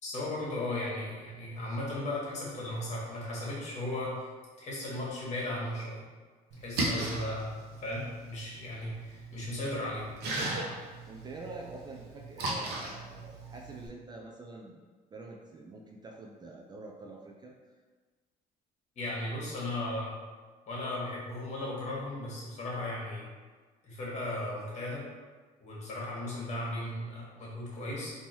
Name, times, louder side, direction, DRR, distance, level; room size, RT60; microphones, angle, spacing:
voice 1, 0.0-4.2 4.6-6.0 6.6-7.5 7.8-10.0 18.9-20.1 20.7-23.2 23.8-25.0 25.6-28.1, left 1 dB, 45° left, -5 dB, 1.4 m, -36 dB
Splash splatter, 6.5-13.9, right 2 dB, 80° right, 0.8 m, -37 dB
voice 2, 11.1-14.8 15.1-17.5, right 3 dB, 25° right, -1 dB, 0.4 m, -46 dB
3.6 x 2.8 x 2.9 m, 1.4 s
cardioid pair, 110°, 17 cm